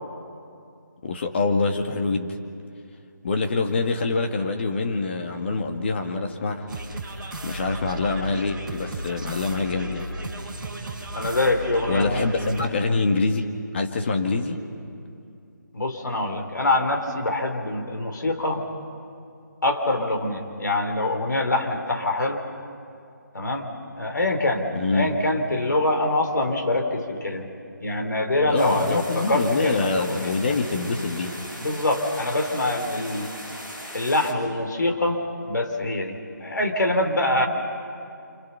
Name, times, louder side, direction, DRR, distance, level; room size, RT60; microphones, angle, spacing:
voice 1, 1.0-2.4 3.2-6.7 7.4-10.1 11.9-13.5 13.7-14.6 24.7-25.1 28.5-31.4, left 3 dB, 35° left, 3 dB, 1.9 m, -25 dB
sound 1, 6.7-12.7, right 1 dB, 5° right, 2.7 m, -35 dB
voice 2, 11.1-12.7 15.7-18.6 19.6-22.4 23.3-23.7 24.0-27.5 27.8-30.4 31.6-33.3 33.9-37.5, left 2 dB, 70° left, 4 dB, 3.5 m, -25 dB
sound 2, 28.5-34.3, equal, 10° left, 3.7 m, -39 dB
29.5 x 27.0 x 5.8 m, 2.5 s
figure-of-eight pair, 160°, 11 cm